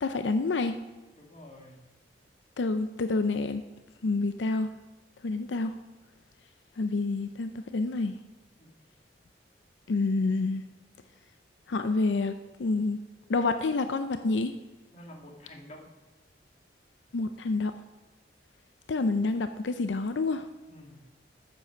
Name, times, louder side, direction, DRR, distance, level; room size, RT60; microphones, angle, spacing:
voice 1, 0.0-0.8 2.6-3.6 4.0-4.7 5.2-5.7 6.8-8.1 9.9-10.6 11.7-12.3 12.6-13.0 13.3-14.5 17.1-17.7 18.9-20.5, left 3 dB, 85° left, 9 dB, 0.5 m, -28 dB
voice 2, 1.2-1.8 8.6-8.7 14.9-15.9 20.7-21.1, left 1 dB, 40° left, 1 dB, 1.8 m, -49 dB
9.5 x 7.7 x 5.0 m, 1.2 s
head